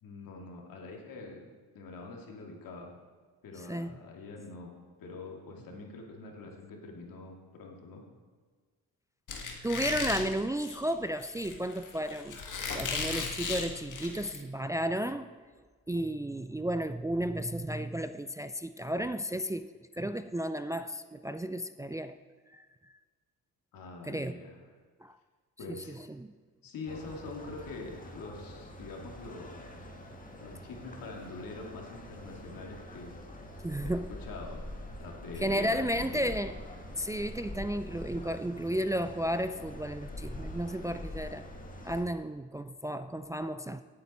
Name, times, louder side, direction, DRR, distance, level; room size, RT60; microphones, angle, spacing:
voice 1, 0.0-2.9 3.4-4.7 5.0-8.0 23.7-24.6 25.6-26.0 26.6-29.6 30.4-33.1 33.8-34.7 35.0-36.3, left 3 dB, 80° left, 1 dB, 2.5 m, -44 dB
Squeak, 9.3-14.4, left 5 dB, 60° left, 1.9 m, -36 dB
voice 2, 9.6-12.4 12.7-15.3 15.9-19.7 20.0-22.2 22.5-22.7 24.0-24.4 25.0-25.2 25.7-26.3 33.6-34.1 35.4-36.6 37.0-41.4 41.8-43.8, right 1 dB, 10° right, 10 dB, 0.4 m, -33 dB
sound 1, 26.9-42.0, left 1 dB, 25° left, 1.8 m, -45 dB
17.5 x 8.5 x 4.3 m, 1.5 s
cardioid pair, 85°, 34 cm